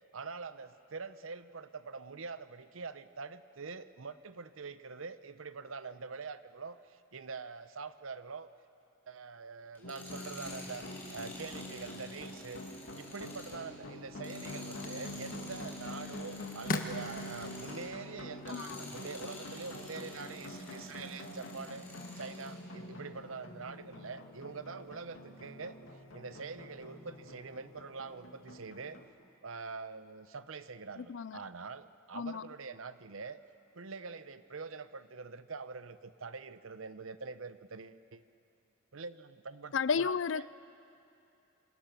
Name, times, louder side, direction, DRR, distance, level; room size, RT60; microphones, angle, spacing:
voice 1, 0.1-8.5 9.1-12.6 13.0-21.9 22.2-25.8 26.1-29.0 29.4-33.4 33.7-38.2 38.9-40.5, right 4 dB, 85° right, 0.9 m, -44 dB
Tools, 9.7-17.9 18.4-22.6, left 2 dB, 10° left, 5.3 m, -50 dB
sound 1, 9.8-29.1, left 1 dB, 80° left, 2.5 m, -46 dB
sound 2, 13.8-20.0, left 3 dB, 45° left, 1.4 m, -44 dB
voice 2, 31.0-31.4 32.1-32.4 39.7-40.5, left 6 dB, 65° left, 0.5 m, -33 dB
27.0 x 24.5 x 6.9 m
head